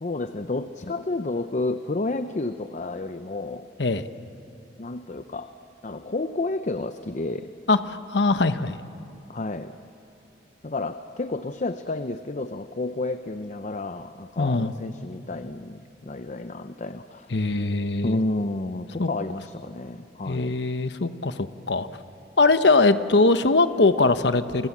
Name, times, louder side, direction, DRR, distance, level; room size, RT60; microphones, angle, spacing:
voice 1, 0.0-3.7 4.8-5.5 5.8-7.5 9.3-9.7 10.6-17.3 18.0-20.5, left 2 dB, 45° left, 9 dB, 0.7 m, -31 dB
voice 2, 7.7-8.8 14.4-14.7 17.3-18.2 19.0-19.1 20.3-21.9 22.4-24.7, left 3 dB, 80° left, 10 dB, 1.1 m, -21 dB
29.5 x 24.5 x 7.4 m, 2.6 s
head